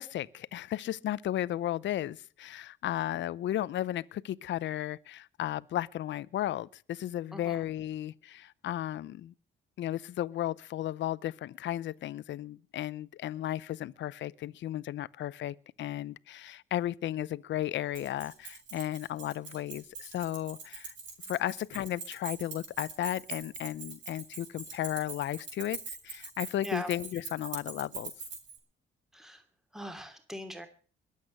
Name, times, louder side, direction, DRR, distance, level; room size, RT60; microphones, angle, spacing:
voice 1, 0.0-9.3 9.8-20.9 21.3-28.1, left 12 dB, 70° left, 0.7 m, -34 dB
voice 2, 7.3-7.6 26.6-26.9 29.1-29.4 29.7-30.7, equal, ahead, 2.9 m, -40 dB
Keys jangling, 17.9-28.6, right 5 dB, 65° right, 6.8 m, -43 dB
22.0 x 8.4 x 6.5 m
cardioid pair, 90°, 20 cm